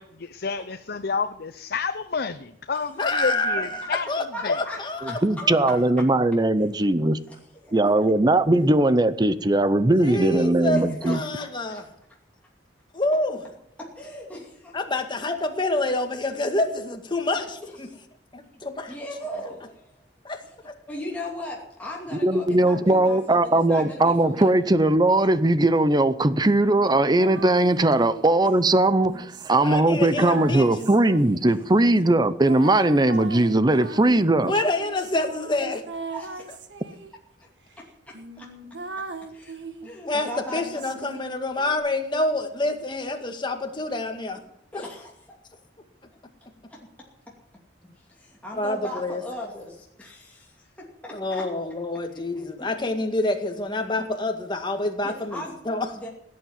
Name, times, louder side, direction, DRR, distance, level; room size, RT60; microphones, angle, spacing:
voice 1, 0.0-4.1 4.4-4.6, left 5 dB, 55° left, 10 dB, 0.7 m, -29 dB
voice 2, 3.0-5.9 10.0-11.9 12.9-13.4 14.7-17.9 18.3-18.9 20.2-20.7 29.6-31.0 31.8-31.9 34.0-34.2 34.5-35.8 40.1-44.4 44.7-44.8 48.6-49.2 51.1-55.9, left 2 dB, 25° left, 5 dB, 2.1 m, -27 dB
voice 3, 4.0-4.8 5.1-5.4 7.3-7.4 7.6-7.8 10.7-11.8 13.8-14.8 17.4-17.5 18.9-20.0 20.9-24.5 36.1-36.5 38.1-38.5 39.3-40.6 44.7-45.4 46.7-46.8 47.8-51.4 52.3-52.7 54.0-54.1 55.0-55.6 56.0-56.1, left 1 dB, 10° left, -3 dB, 2.7 m, -38 dB
voice 4, 5.2-7.2 7.7-11.2 22.2-34.5, right 2 dB, 25° right, 14 dB, 0.7 m, -19 dB
sound 1, 26.6-28.4 29.1-31.6 32.5-37.1 37.7-37.8 38.1-39.9 40.5-41.8, right 3 dB, 70° right, 1.5 m, -39 dB
17.0 x 8.7 x 9.1 m, 0.73 s
head